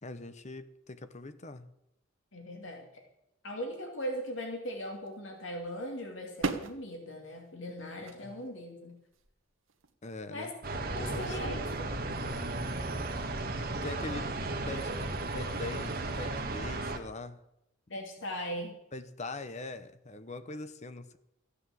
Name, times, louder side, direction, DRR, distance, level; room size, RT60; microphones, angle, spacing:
voice 1, 0.0-1.7 8.2-8.3 10.0-10.5 11.0-11.5 13.8-14.3 14.7-14.9 15.3-17.4 18.9-21.2, left 3 dB, 35° left, 11 dB, 0.9 m, -42 dB
voice 2, 2.3-2.9 3.4-9.0 10.3-10.5 10.9-11.9 17.9-18.8, equal, 70° left, 2 dB, 2.6 m, -39 dB
sound 1, 5.1-5.2 5.7-6.0 6.4-6.8 7.7-8.4 9.1-9.3 9.7-9.9, right 3 dB, 80° right, 1.4 m, -36 dB
sound 2, 10.6-17.0, right 2 dB, 50° right, 1.6 m, -35 dB
15.0 x 9.8 x 7.7 m, 0.84 s
head